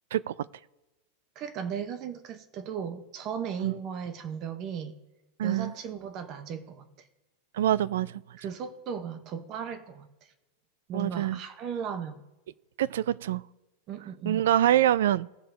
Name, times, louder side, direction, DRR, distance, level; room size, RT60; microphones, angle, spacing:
voice 1, 1.4-5.0 5.4-6.9 8.4-10.1 10.9-12.2 13.9-14.5, right 7 dB, 25° right, 10 dB, 0.8 m, -36 dB
voice 2, 5.4-5.7 7.5-8.2 10.9-11.4 12.8-13.4 14.3-15.3, right 12 dB, 75° right, 22 dB, 0.3 m, -25 dB
18.0 x 7.0 x 3.3 m, 1.1 s
supercardioid pair, 175°, 0 cm